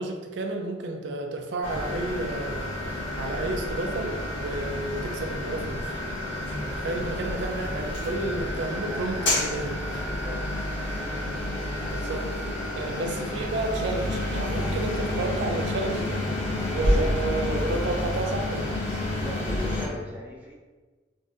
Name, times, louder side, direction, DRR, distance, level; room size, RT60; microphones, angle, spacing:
voice 1, 0.0-5.9 6.6-9.7 11.9-12.2 12.7-16.2 16.7-18.7, right 2 dB, 80° right, 3 dB, 0.4 m, -31 dB
sound 1, 1.6-19.9, left 1 dB, 90° left, 1.4 m, -29 dB
voice 2, 6.7-7.5 8.3-9.5 10.0-10.5 12.0-12.3 12.7-13.0 16.7-17.8 19.1-20.5, left 1 dB, 10° right, -4 dB, 0.5 m, -40 dB
3.9 x 2.6 x 2.4 m, 1.3 s
head